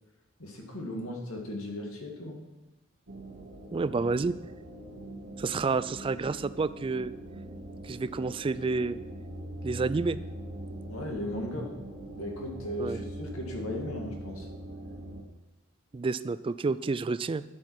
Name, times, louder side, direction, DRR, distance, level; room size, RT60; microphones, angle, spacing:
voice 1, 0.4-2.4 10.9-11.8 12.2-14.5, left 1 dB, 80° left, 2 dB, 2.1 m, -36 dB
sound 1, 3.1-15.2, right 1 dB, 55° right, 1.3 m, -42 dB
voice 2, 3.7-4.4 5.4-7.1 7.8-9.0 9.6-10.2 12.8-13.0 15.9-17.4, right 4 dB, 25° right, 16 dB, 0.3 m, -29 dB
10.0 x 8.4 x 4.8 m, 1.1 s
head